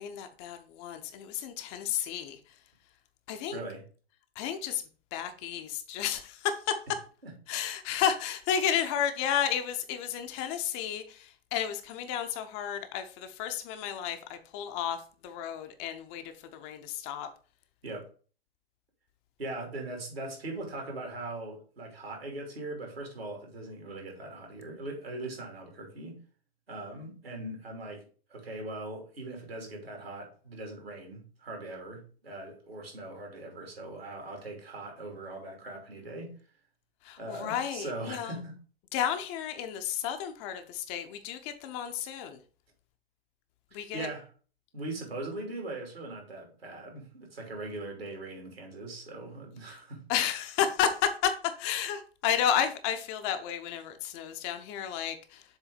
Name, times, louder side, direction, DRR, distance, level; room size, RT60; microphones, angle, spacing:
voice 1, 0.0-2.4 3.3-3.6 4.4-4.8 5.1-6.7 7.5-15.0 15.2-16.2 16.5-17.3 37.0-38.3 38.9-42.4 43.7-44.1 50.1-51.3 51.6-55.4, left 9 dB, 30° left, 0.6 m, -32 dB
voice 2, 3.5-3.8 7.2-7.3 17.8-18.1 19.4-26.2 26.7-28.0 28.3-36.3 37.2-38.5 43.7-44.3 44.7-50.0, right 2 dB, 75° right, 2.9 m, -40 dB
7.3 x 3.4 x 5.0 m
figure-of-eight pair, 105°, 31 cm